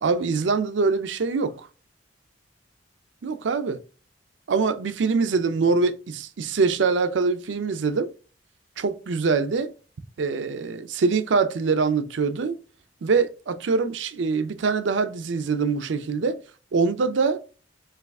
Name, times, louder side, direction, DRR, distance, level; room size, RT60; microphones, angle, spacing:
voice 1, 0.0-1.7 3.2-3.8 4.5-8.1 8.8-9.7 10.2-12.6 13.0-16.4 16.7-17.4, right 4 dB, 85° right, 0.5 m, -24 dB
4.9 x 2.4 x 3.4 m
head